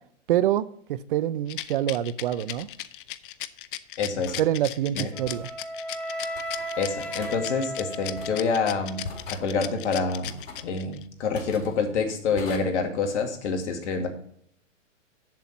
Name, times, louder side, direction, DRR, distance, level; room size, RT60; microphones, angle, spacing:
voice 1, 0.3-0.6 0.9-2.7 4.4-5.5, right 12 dB, 45° right, 17 dB, 0.5 m, -25 dB
Rattle, 1.5-11.0, left 14 dB, 45° left, 0.6 m, -36 dB
sound 1, 2.5-2.7 4.3-4.5 5.2-5.5 6.3-6.7 7.2-7.3 8.2-8.6 9.0-9.5 10.2-10.7 11.3-11.8 12.4-12.6, left 3 dB, 85° left, 2.3 m, -40 dB
voice 2, 4.0-4.4 4.9-5.1 6.8-9.0 9.3-10.3 10.6-14.1, left 4 dB, 60° left, 5 dB, 2.2 m, -27 dB
Wind instrument woodwind instrument, 5.1-9.2, right 1 dB, 5° left, 0.9 m, -35 dB
7.5 x 7.4 x 5.3 m, 0.64 s
hypercardioid pair, 135°, 38 cm